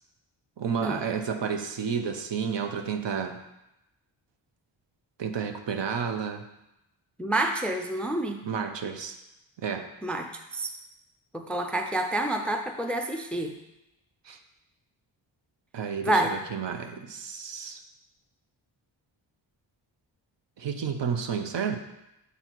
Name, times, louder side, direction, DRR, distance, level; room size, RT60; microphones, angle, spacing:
voice 1, 0.6-3.4 5.2-6.4 8.4-9.2 9.6-9.9 14.3-14.4 15.7-17.8 20.6-21.8, right 6 dB, 65° right, 6 dB, 0.7 m, -31 dB
voice 2, 7.2-8.4 10.0-10.7 11.3-13.5 16.0-16.3, right 1 dB, 5° left, 4 dB, 0.4 m, -28 dB
6.9 x 4.2 x 4.5 m, 0.90 s
wide cardioid pair, 125°, 46 cm